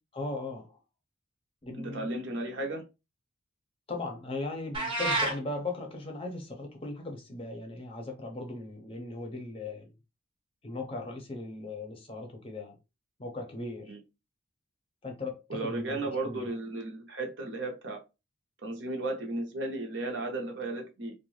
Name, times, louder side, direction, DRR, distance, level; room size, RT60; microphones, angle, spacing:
voice 1, 0.1-0.8 1.6-2.1 3.9-9.9 10.6-12.8 13.2-13.9 15.0-16.4, left 2 dB, 25° left, 0.6 m, -38 dB
voice 2, 1.7-2.8 13.9-14.0 15.5-18.0 18.6-21.1, right 2 dB, 60° right, 0.7 m, -34 dB
sound 1, 4.7-5.4, right 2 dB, 25° right, 0.7 m, -28 dB
2.6 x 2.2 x 3.1 m
head